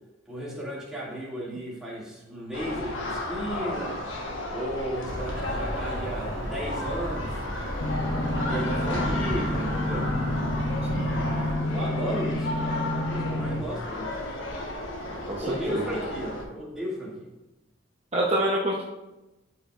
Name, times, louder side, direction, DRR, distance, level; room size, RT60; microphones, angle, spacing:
voice 1, 0.3-4.0 4.5-7.4 8.4-10.1 11.7-14.2 15.4-17.3, equal, 5° right, -7 dB, 2.3 m, -35 dB
sound 1, 2.5-16.4, left 1 dB, 70° left, 1.3 m, -34 dB
sound 2, 5.1-11.5, equal, 45° right, 1.5 m, -35 dB
sound 3, 7.8-13.6, left 1 dB, 55° left, 0.8 m, -29 dB
voice 2, 15.1-15.9 18.1-18.8, right 1 dB, 30° right, -3 dB, 0.8 m, -27 dB
12.5 x 6.0 x 2.5 m, 1.0 s
head